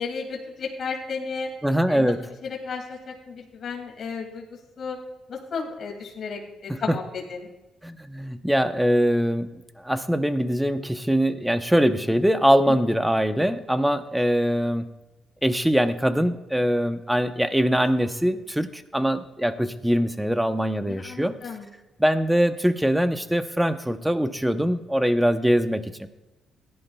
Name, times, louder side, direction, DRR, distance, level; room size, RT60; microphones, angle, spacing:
voice 1, 0.0-1.5 1.9-2.1 2.4-5.0 5.3-7.5 12.7-12.9 20.9-21.7, left 5 dB, 55° left, 0 dB, 2.3 m, -33 dB
voice 2, 1.6-2.2 6.7-7.0 7.8-14.9 15.4-21.4 22.0-26.1, equal, 5° right, 10 dB, 0.8 m, -23 dB
17.5 x 11.0 x 2.3 m, 1.0 s
cardioid pair, 90°, 0 cm